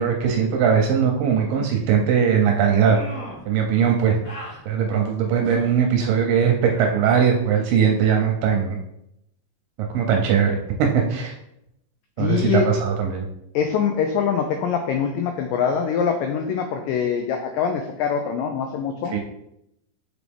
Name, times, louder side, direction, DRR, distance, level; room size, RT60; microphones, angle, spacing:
voice 1, 0.0-3.0 3.5-4.2 4.7-8.8 9.9-11.3 12.2-13.3 19.1-19.2, right 7 dB, 80° right, 2 dB, 2.1 m, -20 dB
sound 1, 2.8-3.5 4.2-4.6 5.4-5.8 6.7-7.0, left 1 dB, 40° left, 2.0 m, -37 dB
voice 2, 12.2-12.7 13.5-19.2, left 7 dB, 90° left, 5 dB, 1.9 m, -23 dB
6.1 x 4.7 x 3.5 m, 0.79 s
omnidirectional pair, 4.5 m